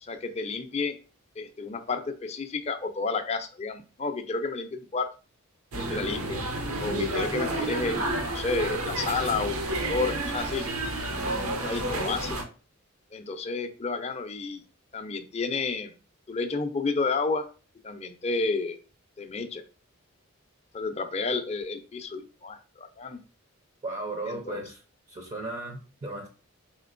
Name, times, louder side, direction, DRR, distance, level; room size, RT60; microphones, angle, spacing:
voice 1, 0.0-1.0 1.4-5.1 5.7-6.4 6.8-10.6 11.6-12.4 13.1-14.6 14.9-15.9 16.3-17.5 17.8-18.8 19.2-19.6 20.7-23.2 24.2-24.6, left 4 dB, 30° left, 7 dB, 0.4 m, -31 dB
sound 1, 5.7-12.4, right 2 dB, 80° right, 0.8 m, -30 dB
voice 2, 23.8-24.8 25.1-26.3, right 2 dB, 30° right, 4 dB, 0.5 m, -35 dB
4.3 x 3.6 x 2.5 m, 0.35 s
head